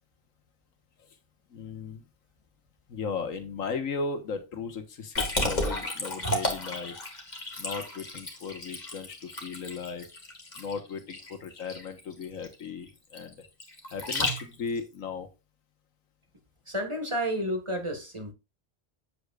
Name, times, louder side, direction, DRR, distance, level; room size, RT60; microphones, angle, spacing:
voice 1, 1.5-2.0 2.9-6.9 7.6-10.1 10.6-13.4 13.9-15.3, left 5 dB, 80° left, 1.7 m, -36 dB
Liquid, 5.2-14.8, left 1 dB, 35° left, 2.1 m, -33 dB
voice 2, 16.7-18.3, equal, 25° right, 1.8 m, -31 dB
8.1 x 8.1 x 2.4 m
omnidirectional pair, 1.4 m